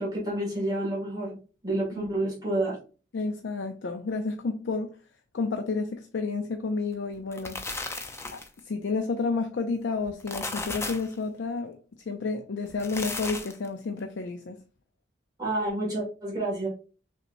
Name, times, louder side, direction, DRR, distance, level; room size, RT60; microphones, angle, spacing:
voice 1, 0.0-1.4 1.6-2.8 15.4-16.7, right 1 dB, 20° right, 1.8 m, -29 dB
voice 2, 3.1-5.0 5.3-11.8 12.1-14.6, left 4 dB, 75° left, 0.5 m, -31 dB
sound 1, 7.1-8.6 10.0-11.1 12.7-13.7, left 3 dB, 15° left, 0.4 m, -35 dB
5.9 x 2.9 x 2.6 m
head